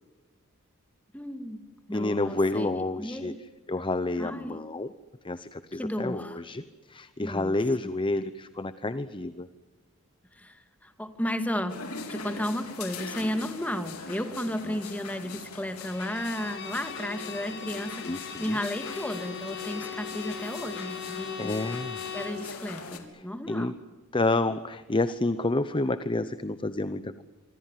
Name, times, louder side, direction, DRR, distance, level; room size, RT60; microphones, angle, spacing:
voice 1, 1.1-1.6 1.9-3.3 4.2-4.6 5.8-6.4 7.2-7.5 7.8-7.9 10.3-11.7 12.1-21.5 22.1-23.7, equal, 5° left, 8 dB, 2.4 m, -33 dB
voice 2, 1.9-3.3 3.7-4.9 5.2-9.5 14.6-14.8 18.0-18.6 21.4-22.0 23.1-23.8 24.1-27.2, left 2 dB, 25° left, 13 dB, 0.8 m, -29 dB
sound 1, 11.7-23.0, left 4 dB, 90° left, 3.9 m, -42 dB
Bowed string instrument, 15.8-22.5, left 7 dB, 55° left, 5.6 m, -39 dB
27.5 x 24.5 x 7.5 m, 1.3 s
head